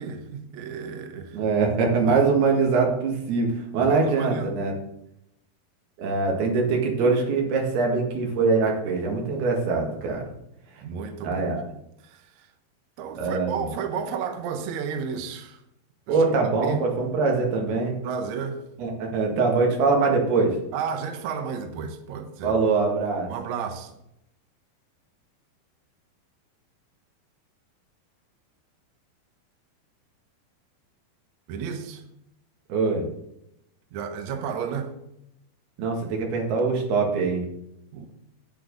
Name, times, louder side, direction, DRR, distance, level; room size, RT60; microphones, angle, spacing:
voice 1, 0.0-1.4 2.1-2.2 3.8-4.6 10.8-11.5 12.0-12.5 13.0-15.6 16.1-16.2 16.6-16.8 18.0-18.6 20.7-22.6 23.3-24.0 31.5-32.0 33.9-34.9 37.9-38.1, right 6 dB, 65° right, 2.0 m, -32 dB
voice 2, 1.3-4.7 6.0-10.3 11.2-11.6 13.2-13.6 16.1-17.9 18.8-20.6 22.4-23.3 32.7-33.1 35.8-37.4, right 4 dB, 85° right, 3.8 m, -23 dB
10.0 x 9.1 x 3.9 m
omnidirectional pair, 4.4 m